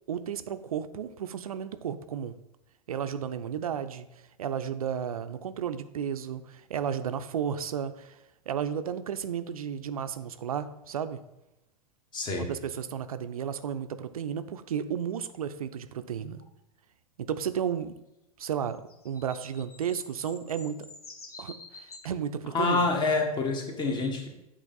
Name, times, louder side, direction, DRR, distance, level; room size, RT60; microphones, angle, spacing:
voice 1, 0.1-2.4 2.9-4.1 4.4-8.2 8.5-11.2 12.4-16.4 17.2-18.0 18.4-20.9 21.4-22.9, right 8 dB, 70° right, 11 dB, 0.4 m, -33 dB
voice 2, 12.1-12.5 22.5-24.3, left 3 dB, 25° left, 3 dB, 1.2 m, -27 dB
sound 1, 18.7-22.1 23.1-23.2, left 3 dB, 75° left, 0.9 m, -47 dB
8.0 x 3.0 x 3.9 m, 0.89 s
figure-of-eight pair, 90°, 19 cm